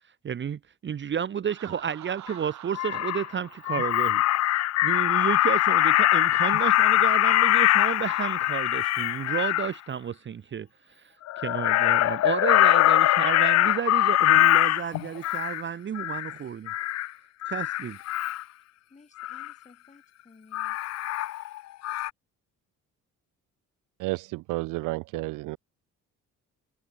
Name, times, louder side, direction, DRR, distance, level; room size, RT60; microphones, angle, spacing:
voice 1, 0.2-4.2 4.8-16.7 17.5-18.0, right 8 dB, 40° right, 0.9 m, -32 dB
Laughter, 1.5-5.2, right 13 dB, 65° right, 1.5 m, -47 dB
Crow, 2.3-2.4 2.7-3.3 3.7-9.7 11.3-15.6 16.0-16.3 16.7-17.1 17.4-18.4 19.2-19.5 20.5-21.6 21.8-22.1, left 15 dB, 55° left, 0.5 m, -23 dB
voice 2, 18.9-20.9, left 3 dB, 25° left, 7.4 m, -56 dB
voice 3, 24.0-25.6, right 21 dB, 90° right, 0.5 m, -31 dB
cardioid pair, 105°, 31 cm